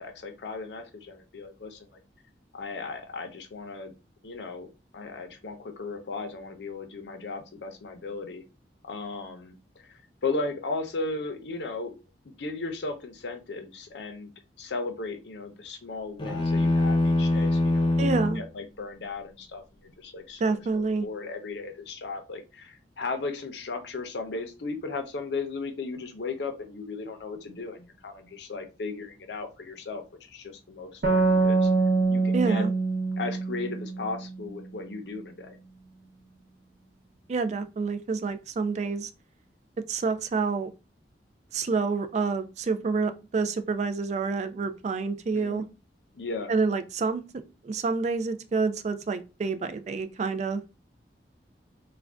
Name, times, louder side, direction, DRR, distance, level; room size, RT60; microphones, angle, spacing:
voice 1, 0.0-2.0 2.5-3.9 4.2-4.7 4.9-8.4 8.8-12.0 12.2-14.3 14.6-31.7 32.1-32.6 33.2-35.6 45.3-45.6 46.1-46.5, left 3 dB, 75° left, 0.6 m, -36 dB
sound 1, 16.2-18.5, left 2 dB, 30° left, 0.6 m, -23 dB
voice 2, 18.0-18.4 20.4-21.0 32.3-32.7 37.3-39.1 39.9-40.7 41.5-45.6 46.5-47.2 47.6-50.6, right 4 dB, 40° right, 0.3 m, -28 dB
sound 2, 31.0-34.5, right 3 dB, 60° right, 0.7 m, -25 dB
2.5 x 2.2 x 3.3 m
head